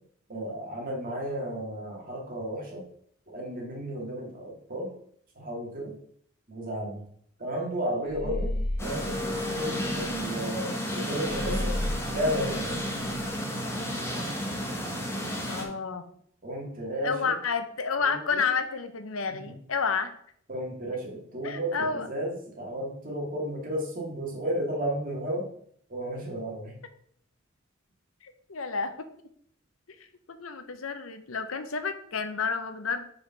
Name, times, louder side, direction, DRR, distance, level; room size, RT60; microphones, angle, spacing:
voice 1, 0.3-2.8 3.3-4.9 5.4-5.9 6.5-7.0 7.4-8.5 8.8-11.7 12.1-12.7 16.4-17.3 18.0-18.4 19.3-19.5 20.5-25.5 25.9-26.7, right 1 dB, 45° right, -2 dB, 2.2 m, -33 dB
sound 1, 8.1-10.2 11.2-13.3, left 1 dB, 50° left, 1.6 m, -33 dB
voice 2, 8.2-8.6 15.5-16.0 17.0-20.1 21.4-22.1 28.2-29.1 30.0-33.1, left 5 dB, 85° left, 9 dB, 0.8 m, -30 dB
sound 2, 8.8-15.6, equal, 15° left, 1.4 m, -32 dB
5.0 x 5.0 x 5.6 m, 0.64 s
head